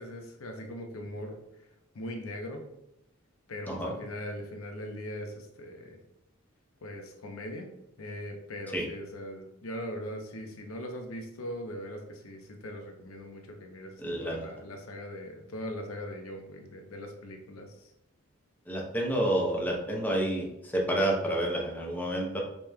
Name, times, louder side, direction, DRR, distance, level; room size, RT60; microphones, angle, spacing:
voice 1, 0.0-1.4 1.9-2.7 3.5-6.0 6.8-7.7 8.0-17.9, equal, 85° left, 4 dB, 0.7 m, -40 dB
voice 2, 14.0-14.5 18.7-22.4, right 1 dB, 10° left, -2 dB, 0.7 m, -29 dB
5.1 x 3.1 x 2.2 m, 0.84 s
head